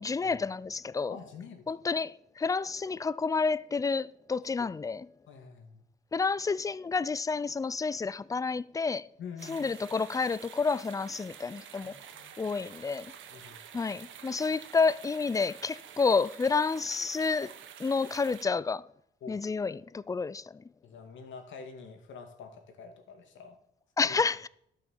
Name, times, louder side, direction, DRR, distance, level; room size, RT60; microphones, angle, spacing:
voice 1, 0.0-1.2 1.7-5.1 6.1-9.1 9.5-12.0 12.4-13.1 13.7-17.5 17.8-18.9 19.3-20.6 24.0-24.5, left 4 dB, 15° left, 0.4 m, -30 dB
voice 2, 1.1-1.8 4.6-4.7 5.3-5.9 9.2-9.7 11.8-12.4 13.3-13.6 19.2-19.4 20.8-23.6 24.0-24.2, left 5 dB, 75° left, 2.2 m, -46 dB
sound 1, 9.4-18.4, right 8 dB, 80° right, 1.4 m, -49 dB
12.0 x 6.2 x 7.2 m
cardioid pair, 90°, 20 cm